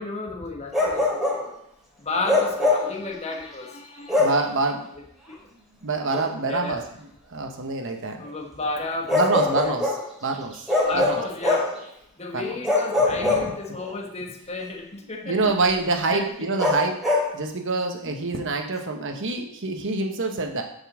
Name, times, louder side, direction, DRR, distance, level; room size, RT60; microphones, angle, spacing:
voice 1, 0.0-1.6 2.0-4.4 5.3-5.4 6.5-6.8 8.2-9.7 10.8-11.7 12.2-15.7 16.1-16.5, left 3 dB, 30° left, 2 dB, 1.2 m, -33 dB
Bark, 0.7-1.5 2.2-2.9 4.1-4.5 6.1-6.3 9.1-10.0 10.7-11.8 12.6-13.9 16.6-17.3, left 2 dB, ahead, 2.6 m, -22 dB
voice 2, 4.1-4.9 5.8-8.2 9.1-10.7 10.9-11.2 12.3-12.6 12.9-13.5 15.0-17.0 17.3-20.6, right 3 dB, 60° right, 3 dB, 1.0 m, -26 dB
7.1 x 5.5 x 7.2 m, 0.71 s
head